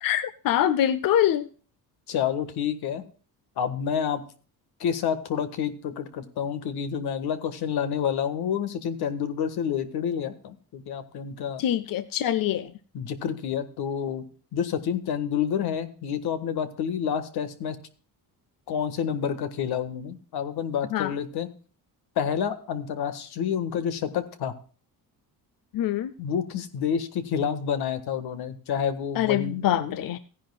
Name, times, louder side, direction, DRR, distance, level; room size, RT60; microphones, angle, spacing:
voice 1, 0.0-1.5 11.6-12.7 20.9-21.1 25.7-26.1 29.2-30.2, left 11 dB, 60° left, 14 dB, 0.7 m, -24 dB
voice 2, 2.1-3.0 3.6-4.2 4.8-11.6 12.9-14.2 14.5-17.8 18.7-21.5 22.1-24.5 26.2-29.9, left 8 dB, 85° left, 10 dB, 1.6 m, -29 dB
17.0 x 10.5 x 2.3 m, 0.40 s
cardioid pair, 130°, 38 cm